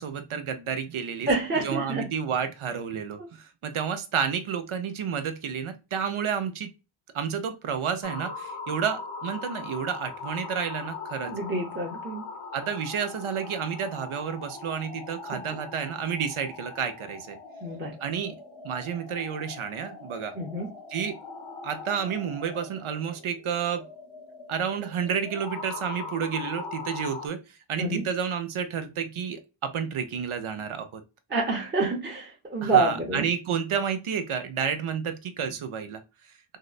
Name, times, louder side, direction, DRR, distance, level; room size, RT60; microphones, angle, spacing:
voice 1, 0.0-6.7 7.1-11.3 12.5-17.4 18.0-18.3 18.6-20.3 20.9-21.2 21.6-23.8 24.5-27.4 27.7-31.0 32.6-36.0, right 7 dB, 80° right, 0.6 m, -30 dB
voice 2, 1.3-2.1 11.2-12.2 17.6-17.9 20.4-20.7 27.8-28.0 31.3-33.2, right 3 dB, 20° right, 0.8 m, -27 dB
sound 1, 8.0-27.3, left 4 dB, 70° left, 0.8 m, -41 dB
3.7 x 2.1 x 2.4 m
wide cardioid pair, 75°, 49 cm